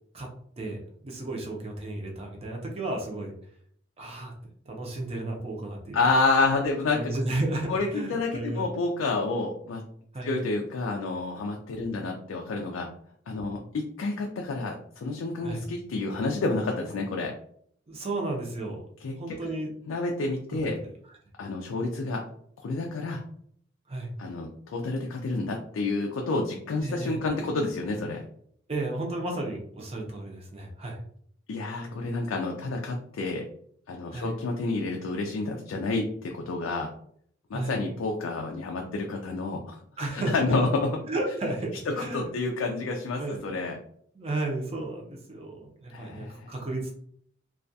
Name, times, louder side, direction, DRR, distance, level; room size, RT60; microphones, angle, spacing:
voice 1, 1.0-3.3 4.0-4.3 4.7-6.0 6.9-8.6 10.1-10.4 11.7-11.9 13.4-13.6 15.4-15.6 17.9-18.8 19.2-19.7 20.5-20.8 23.9-24.1 26.8-27.2 28.7-31.0 34.1-34.3 37.5-37.8 40.0-40.5 41.0-42.3 43.2-43.4 44.2-47.0, right 2 dB, 30° right, 1 dB, 0.5 m, -33 dB
voice 2, 5.9-7.1 7.7-9.8 10.2-12.9 13.3-17.3 19.0-19.4 19.9-20.8 21.4-22.2 22.6-23.2 24.2-28.2 31.5-33.5 33.9-36.9 37.5-39.8 40.1-40.9 41.9-43.8 45.9-46.5, left 3 dB, 80° left, 1 dB, 0.4 m, -29 dB
2.3 x 2.2 x 2.6 m, 0.64 s
head